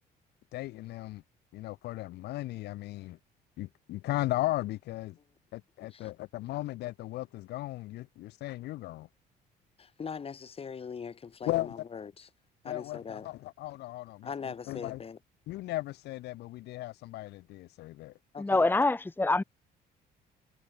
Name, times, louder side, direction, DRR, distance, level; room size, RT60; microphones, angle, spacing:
voice 1, 0.5-1.2 1.5-3.2 3.6-5.2 5.5-9.1 11.5-11.7 12.6-15.0 15.5-18.1 18.5-18.6, left 17 dB, 80° left, 2.0 m, -36 dB
voice 2, 9.8-12.3 12.6-13.3 14.2-15.2 18.3-18.7, left 6 dB, 35° left, 4.5 m, -41 dB
voice 3, 18.4-19.4, left 2 dB, 10° left, 1.3 m, -25 dB
cardioid pair, 110°, 17 cm